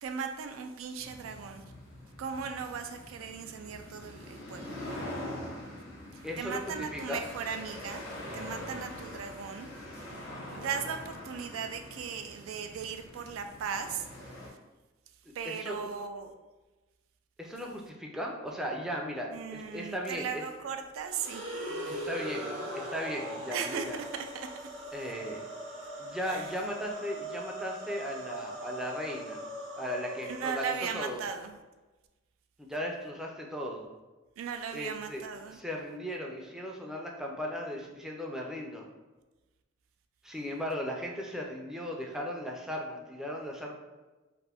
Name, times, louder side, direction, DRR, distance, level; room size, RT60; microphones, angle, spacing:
voice 1, 0.0-1.6 2.2-4.8 6.1-8.0 8.3-9.7 9.9-10.2 10.5-14.1 15.3-16.3 19.3-21.4 23.5-24.7 26.2-26.5 30.2-31.5 34.4-35.6, right 6 dB, 90° right, 7 dB, 0.3 m, -37 dB
sound 1, 1.0-14.5, left 1 dB, 85° left, 0.8 m, -44 dB
voice 2, 6.2-7.2 15.3-15.8 17.4-20.4 21.9-24.0 24.9-25.4 26.0-29.4 29.8-31.2 32.6-33.9 34.7-38.9 40.2-43.7, equal, 5° right, -1 dB, 0.4 m, -37 dB
sound 2, 21.1-31.3, equal, 65° right, 0.7 m, -40 dB
2.5 x 2.4 x 3.4 m, 1.1 s
head